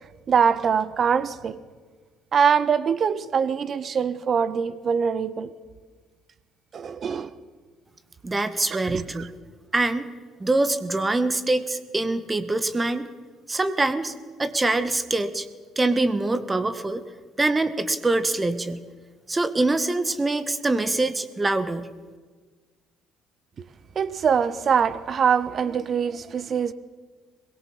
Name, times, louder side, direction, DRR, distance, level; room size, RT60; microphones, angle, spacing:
voice 1, 0.3-1.6 2.3-5.5 6.7-7.3 8.7-9.3 23.6-23.7 23.9-26.7, right 7 dB, 40° right, 1.3 m, -23 dB
voice 2, 8.2-9.3 9.7-10.1 10.4-13.1 13.5-14.1 14.4-15.5 15.8-17.0 17.4-18.8 19.3-21.9, right 2 dB, 20° right, 1.9 m, -24 dB
22.5 x 21.5 x 7.5 m
figure-of-eight pair, 50°, 0 cm